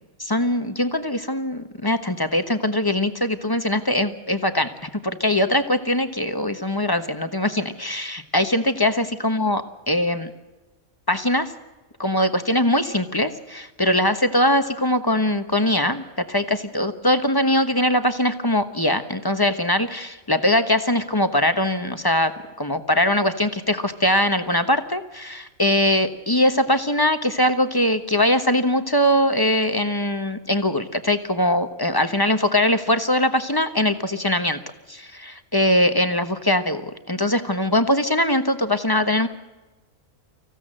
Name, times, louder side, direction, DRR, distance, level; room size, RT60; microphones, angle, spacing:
voice 1, 0.2-10.3 11.1-11.5 12.0-22.3 22.6-34.6 34.9-39.3, left 1 dB, 20° left, 9 dB, 1.1 m, -21 dB
25.5 x 16.0 x 7.7 m, 1.1 s
omnidirectional pair, 1.4 m